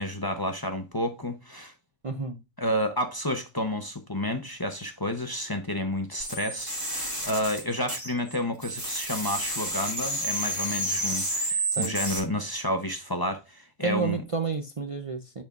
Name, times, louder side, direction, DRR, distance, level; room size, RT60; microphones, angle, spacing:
voice 1, 0.0-1.7 2.6-14.2, left 1 dB, 25° left, 0.5 m, -30 dB
voice 2, 2.0-2.4 11.8-11.9 13.8-15.4, right 5 dB, 60° right, 0.3 m, -30 dB
sound 1, 6.2-8.4 8.6-12.2, right 1 dB, 20° right, 3.2 m, -30 dB
10.5 x 4.4 x 2.4 m
omnidirectional pair, 1.5 m